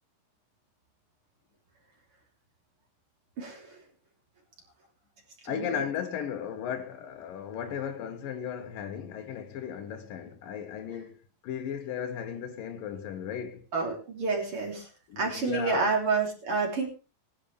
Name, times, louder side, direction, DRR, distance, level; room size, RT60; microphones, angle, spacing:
voice 1, 3.4-3.8 5.5-5.8 13.7-14.9 15.2-16.9, right 4 dB, 40° right, 4.0 m, -29 dB
voice 2, 5.5-13.7 15.1-16.0, left 8 dB, 80° left, 3.1 m, -36 dB
20.0 x 11.5 x 3.4 m
omnidirectional pair, 3.9 m